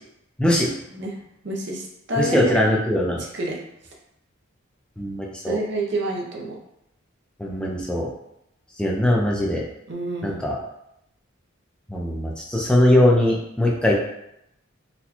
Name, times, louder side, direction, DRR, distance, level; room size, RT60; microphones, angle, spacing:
voice 1, 0.4-0.7 2.2-3.2 5.0-5.6 7.4-8.1 8.8-9.6 10.2-10.6 11.9-13.9, left 1 dB, 5° left, -3 dB, 0.5 m, -21 dB
voice 2, 0.9-2.6 3.3-3.6 5.5-6.6 9.9-10.4, right 1 dB, 60° right, -1 dB, 0.7 m, -28 dB
4.1 x 2.2 x 2.9 m, 0.82 s
head